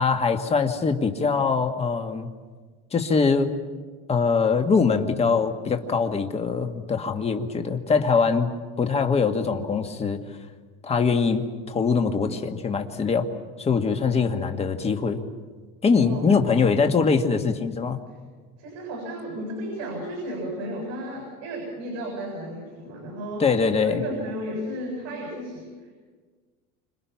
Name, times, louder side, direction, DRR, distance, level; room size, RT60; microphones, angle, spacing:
voice 1, 0.0-2.3 2.9-3.5 4.1-8.5 8.8-10.2 10.8-13.3 13.6-15.2 15.8-18.0 23.4-24.0, left 5 dB, 20° left, 6 dB, 1.7 m, -23 dB
voice 2, 14.1-14.4 15.9-16.4 18.1-18.2 18.6-23.5 23.8-25.9, equal, 60° right, 0 dB, 7.3 m, -34 dB
29.0 x 26.5 x 5.9 m, 1.4 s
cardioid pair, 150°, 30 cm